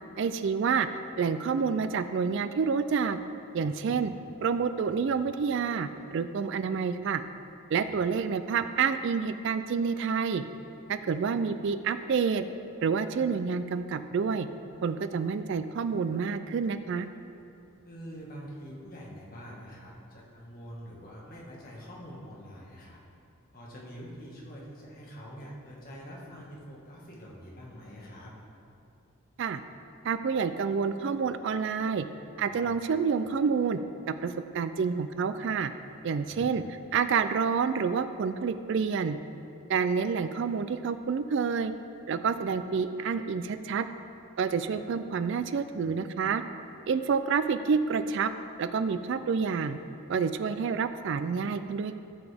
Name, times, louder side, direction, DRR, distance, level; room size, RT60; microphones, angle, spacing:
voice 1, 0.2-0.9 1.2-3.2 3.5-4.1 4.4-7.2 7.7-10.4 10.9-12.4 12.8-14.5 14.8-17.1 29.4-29.6 30.0-32.1 32.4-33.8 34.1-35.7 36.0-39.2 39.7-41.7 42.1-43.9 44.4-46.4 46.9-48.3 48.6-49.8 50.1-52.0, right 5 dB, 60° right, 10 dB, 0.3 m, -28 dB
voice 2, 3.6-4.0 7.8-8.0 17.8-23.0 23.5-28.3 32.5-32.7 36.2-36.6 44.7-44.8, equal, 40° left, -4 dB, 1.7 m, -45 dB
13.0 x 7.1 x 3.5 m, 2.6 s
head